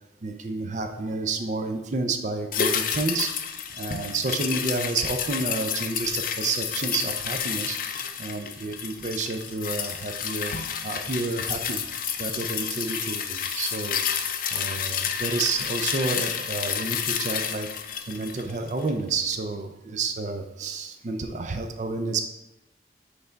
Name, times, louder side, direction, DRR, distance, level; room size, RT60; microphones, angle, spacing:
voice 1, 0.2-3.3 3.8-7.8 8.2-10.5 10.8-11.8 12.2-14.0 14.5-17.7 18.1-22.2, right 3 dB, 40° right, 5 dB, 0.5 m, -30 dB
sound 1, 2.5-19.0 19.3-19.4, left 7 dB, 50° left, 0.5 m, -30 dB
7.9 x 3.4 x 3.9 m, 0.95 s
head